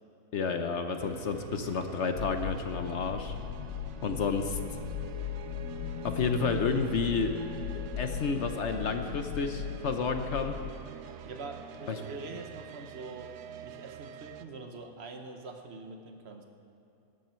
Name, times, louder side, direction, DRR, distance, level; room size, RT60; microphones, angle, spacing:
voice 1, 0.3-3.3 4.0-4.6 6.0-7.3 7.7-10.6 11.9-12.0, left 5 dB, 55° left, 6 dB, 1.0 m, -30 dB
sound 1, 1.0-14.5, right 9 dB, 65° right, 0.7 m, -46 dB
sound 2, 2.1-10.7, left 10 dB, 80° left, 1.2 m, -38 dB
voice 2, 11.2-13.3 13.6-16.4, right 3 dB, 45° right, 5 dB, 1.2 m, -44 dB
18.5 x 12.5 x 4.4 m, 2.7 s
omnidirectional pair, 1.6 m